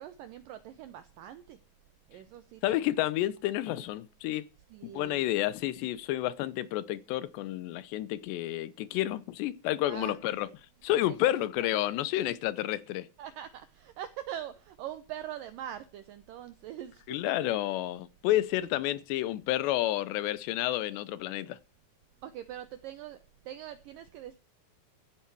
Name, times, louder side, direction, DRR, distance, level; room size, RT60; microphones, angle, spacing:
voice 1, 0.0-1.6 2.1-2.8 3.7-3.9 4.7-5.4 9.8-10.5 13.2-17.0 17.4-17.5 22.2-23.2 23.5-24.4, right 11 dB, 75° right, 2.0 m, -43 dB
voice 2, 2.6-4.4 4.8-10.5 10.8-13.1 17.1-21.6, left 14 dB, 90° left, 3.1 m, -30 dB
14.5 x 10.5 x 4.7 m
omnidirectional pair, 4.8 m